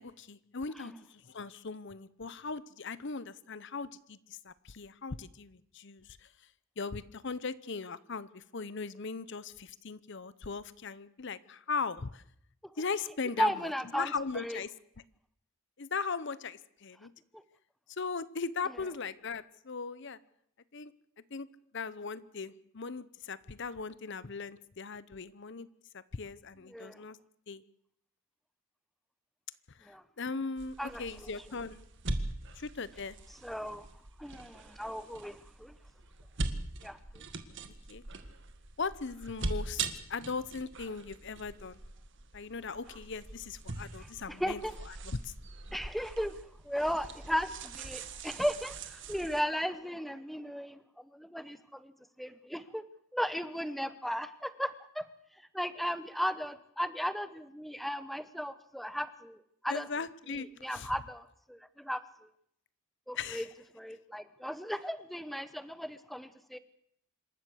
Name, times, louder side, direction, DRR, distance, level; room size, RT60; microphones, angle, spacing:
voice 1, 0.0-6.3 6.8-12.2 12.8-14.7 15.8-17.1 17.9-20.2 20.7-20.9 21.3-21.5 21.7-25.7 25.9-27.2 27.5-27.6 29.8-31.8 32.5-33.2 37.7-38.0 38.8-41.8 42.3-44.6 44.9-45.3 59.7-60.9 63.1-63.5, left 4 dB, 55° left, 17 dB, 0.8 m, -39 dB
voice 2, 13.4-14.6 26.7-27.0 29.8-30.0 30.8-31.3 33.4-33.9 34.2-35.8 36.8-37.2 44.3-44.7 45.7-46.4 46.6-51.9 52.2-52.8 53.1-55.0 55.5-59.9 60.3-62.0 63.1-63.4 63.7-66.6, equal, ahead, 13 dB, 0.9 m, -36 dB
sound 1, 30.6-49.4, right 3 dB, 55° right, 1.8 m, -42 dB
26.5 x 13.0 x 7.9 m, 0.69 s
head